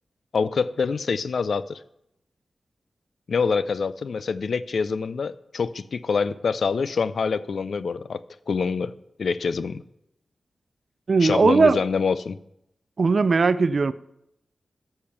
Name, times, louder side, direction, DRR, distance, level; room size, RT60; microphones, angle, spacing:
voice 1, 0.3-1.8 3.3-8.2 8.5-8.9 9.2-9.8 11.2-12.4, left 5 dB, 70° left, 0.5 m, -25 dB
voice 2, 11.1-11.8 13.0-13.9, right 4 dB, 50° right, 0.4 m, -18 dB
14.0 x 6.8 x 5.9 m
wide cardioid pair, 130°, 0 cm